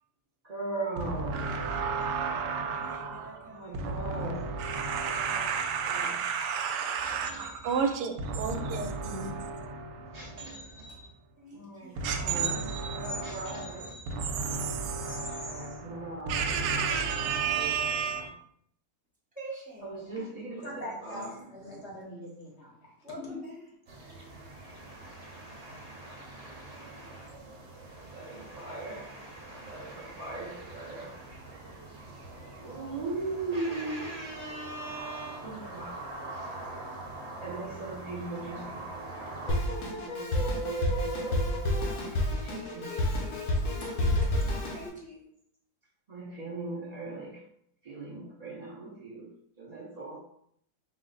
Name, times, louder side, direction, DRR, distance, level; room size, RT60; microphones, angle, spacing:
voice 1, 0.4-1.5 3.3-4.5 5.3-5.5 5.8-6.3 7.0-7.9 10.1-11.1 11.5-14.1 15.0-18.3 19.8-21.5 24.2-27.3 27.6-31.6 32.6-36.0 36.3-36.6 37.4-38.8 39.5-43.1 46.1-47.4 47.8-50.2, right 2 dB, 70° right, 0.3 m, -39 dB
voice 2, 1.1-10.5 12.0-18.3, right 5 dB, 90° right, 1.2 m, -32 dB
voice 3, 2.7-3.7 4.2-4.4 11.4-12.6 19.3-20.3 23.0-23.7 42.5-45.3, equal, 5° right, 0.8 m, -46 dB
voice 4, 20.6-22.9 23.3-23.4, left 1 dB, 45° left, 1.1 m, -42 dB
sound 1, 23.9-39.6, right 2 dB, 50° right, 0.9 m, -44 dB
Drum kit, 39.5-44.9, left 1 dB, 75° left, 1.3 m, -29 dB
4.8 x 2.1 x 3.8 m
omnidirectional pair, 1.7 m